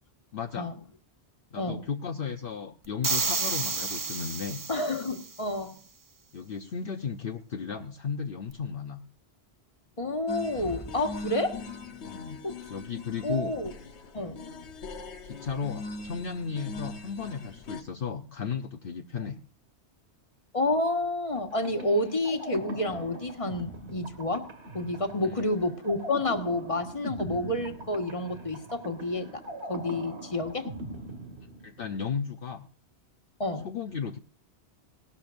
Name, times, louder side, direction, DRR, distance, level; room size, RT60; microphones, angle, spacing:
voice 1, 0.3-0.8 1.5-4.6 6.3-9.0 12.0-13.5 15.2-19.4 31.6-32.7 33.6-34.2, left 6 dB, 60° left, 5 dB, 0.9 m, -35 dB
sound 1, 3.0-5.3, right 4 dB, 30° right, 0.4 m, -30 dB
voice 2, 4.7-5.8 10.0-11.6 12.4-12.5 13.2-13.7 14.1-14.7 20.5-24.5 24.7-29.4 29.7-30.7 33.4-33.7, left 1 dB, 30° left, 5 dB, 1.5 m, -29 dB
sound 2, 10.3-17.8, left 3 dB, 85° left, 1.3 m, -41 dB
sound 3, 21.4-32.0, right 1 dB, 80° right, 2.4 m, -41 dB
18.5 x 12.5 x 2.6 m, 0.42 s
omnidirectional pair, 1.1 m